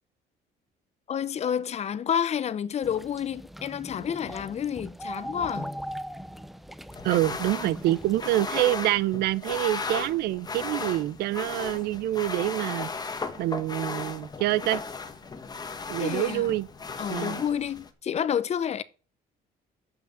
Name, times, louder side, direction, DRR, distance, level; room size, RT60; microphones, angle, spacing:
voice 1, 1.1-5.7 16.0-16.5 17.0-18.8, left 8 dB, 40° left, 0.6 m, -29 dB
sound 1, 2.8-8.2, equal, ahead, 0.4 m, -40 dB
sound 2, 6.9-17.9, left 4 dB, 25° left, 1.2 m, -36 dB
voice 2, 7.0-12.9 13.4-14.8 15.9-16.7 17.1-17.4, right 15 dB, 75° right, 0.5 m, -26 dB
Insect, 7.3-17.2, left 6 dB, 70° left, 1.5 m, -55 dB
8.0 x 5.8 x 7.5 m
cardioid pair, 110°, 17 cm